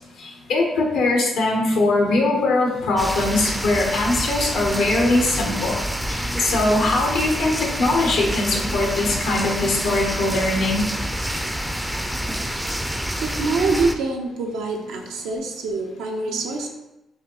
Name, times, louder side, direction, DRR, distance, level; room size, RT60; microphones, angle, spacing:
voice 1, 0.2-5.8 6.1-7.5 7.8-10.8, left 2 dB, 90° left, -1 dB, 0.8 m, -21 dB
sound 1, 3.0-13.9, equal, 5° right, 0.3 m, -27 dB
voice 2, 13.2-16.7, right 3 dB, 90° right, 1 dB, 0.6 m, -25 dB
4.9 x 2.6 x 2.9 m, 0.95 s
cardioid pair, 80°, 0 cm